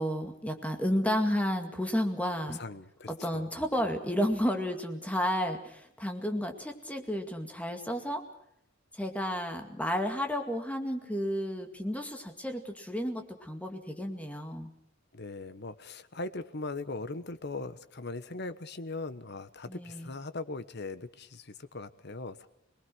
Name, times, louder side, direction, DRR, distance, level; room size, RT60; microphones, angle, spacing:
voice 1, 0.0-2.6 3.1-8.2 8.9-14.7 19.7-20.1, equal, 5° left, 4 dB, 2.2 m, -32 dB
voice 2, 2.5-3.4 15.1-22.5, left 3 dB, 55° left, 12 dB, 1.2 m, -40 dB
26.5 x 20.0 x 6.3 m, 0.74 s
head